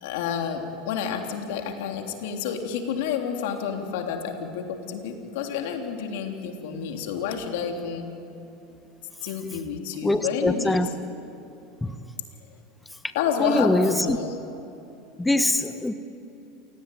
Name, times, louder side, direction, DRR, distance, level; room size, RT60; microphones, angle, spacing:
voice 1, 0.0-8.1 9.2-10.9 13.1-14.4, left 7 dB, 75° left, 3 dB, 3.3 m, -29 dB
voice 2, 10.0-10.9 11.8-12.0 13.4-14.2 15.2-15.9, left 1 dB, 10° left, 9 dB, 1.2 m, -23 dB
28.0 x 18.0 x 9.2 m, 2.8 s
hypercardioid pair, 100°, 0 cm